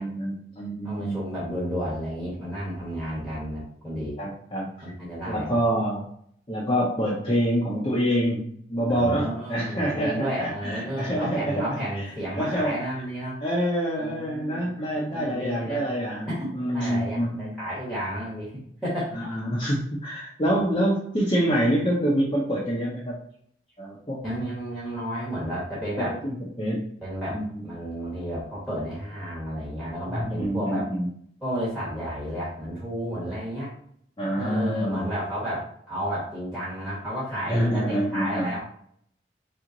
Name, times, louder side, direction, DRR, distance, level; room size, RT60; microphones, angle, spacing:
voice 1, 0.0-1.2 4.2-4.7 5.3-6.0 6.5-12.0 12.4-12.8 13.4-16.3 16.5-17.6 19.1-23.2 23.8-24.2 26.0-26.8 27.3-27.5 30.2-31.1 34.2-35.0 37.5-38.5, equal, 25° left, -6 dB, 0.7 m, -26 dB
voice 2, 0.8-4.2 4.8-5.6 8.9-13.4 14.0-15.8 16.3-18.5 18.8-19.4 24.2-26.2 27.0-30.9 31.4-33.7 34.4-38.6, equal, ahead, -9 dB, 1.2 m, -32 dB
3.4 x 3.0 x 3.8 m, 0.66 s
head